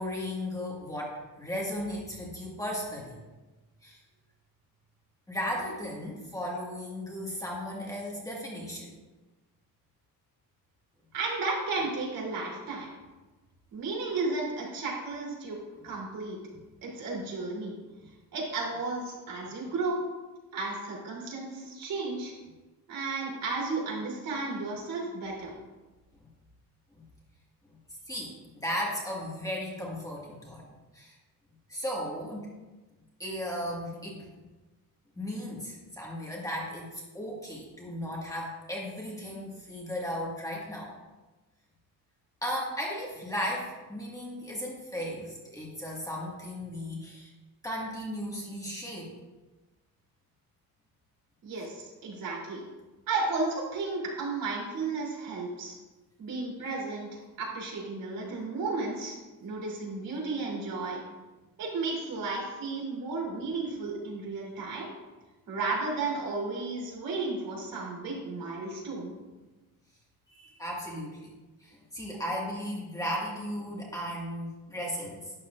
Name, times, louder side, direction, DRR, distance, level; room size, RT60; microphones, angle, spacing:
voice 1, 0.0-3.2 3.8-4.0 5.3-8.9 16.5-16.6 18.0-18.1 26.9-27.0 27.7-27.8 28.1-30.6 30.9-31.1 31.7-32.5 33.2-34.2 35.1-40.9 42.4-47.3 47.6-49.1 51.6-51.7 70.3-71.3 71.6-75.3, equal, 10° left, -4 dB, 1.7 m, -36 dB
voice 2, 11.1-12.9 13.7-15.6 15.8-16.4 16.8-17.7 18.3-20.0 20.5-22.3 22.9-25.5 51.4-52.6 53.1-55.8 56.2-61.0 61.6-64.9 65.5-69.1, right 3 dB, 70° right, -3 dB, 3.4 m, -33 dB
12.0 x 9.9 x 2.5 m, 1.2 s
cardioid pair, 160°, 35 cm